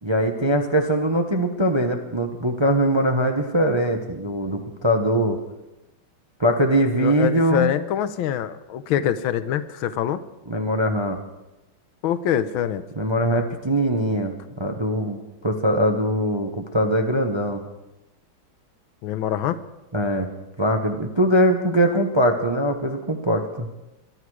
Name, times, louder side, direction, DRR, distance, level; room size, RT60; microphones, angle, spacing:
voice 1, 0.0-5.4 6.4-7.7 10.5-11.2 13.0-17.6 19.9-20.3 20.6-23.7, equal, 30° right, 4 dB, 0.5 m, -22 dB
voice 2, 6.9-10.2 12.0-12.8 19.0-19.6, left 10 dB, 80° left, 13 dB, 1.6 m, -24 dB
21.5 x 11.5 x 4.8 m, 0.99 s
omnidirectional pair, 2.2 m